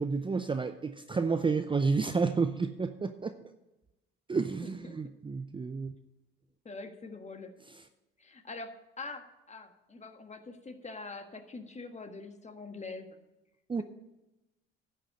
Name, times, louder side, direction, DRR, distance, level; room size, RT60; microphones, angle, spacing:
voice 1, 0.0-3.4 4.3-5.9 13.7-13.8, right 4 dB, 15° right, 9 dB, 0.6 m, -30 dB
voice 2, 4.6-5.1 6.6-7.5 8.2-13.2 13.8-13.9, left 3 dB, 25° left, 7 dB, 1.5 m, -44 dB
10.5 x 6.6 x 7.6 m, 1.0 s
hypercardioid pair, 60°, 29 cm